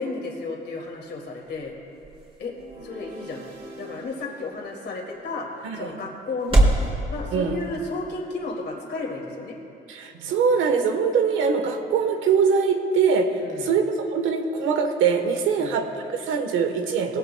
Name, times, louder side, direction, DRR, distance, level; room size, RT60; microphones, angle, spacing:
voice 1, 0.0-1.7 2.4-2.5 2.8-6.7 7.1-9.6 13.4-13.7 15.5-15.8, left 3 dB, 60° left, -1 dB, 2.3 m, -33 dB
sound 1, 0.6-6.9, right 1 dB, 30° right, 3.6 m, -28 dB
sound 2, 2.5-5.7, right 2 dB, 55° right, 2.9 m, -46 dB
voice 2, 9.9-17.2, right 5 dB, 90° right, 5 dB, 1.2 m, -23 dB
19.5 x 16.0 x 2.3 m, 2.8 s
cardioid pair, 90°, 20 cm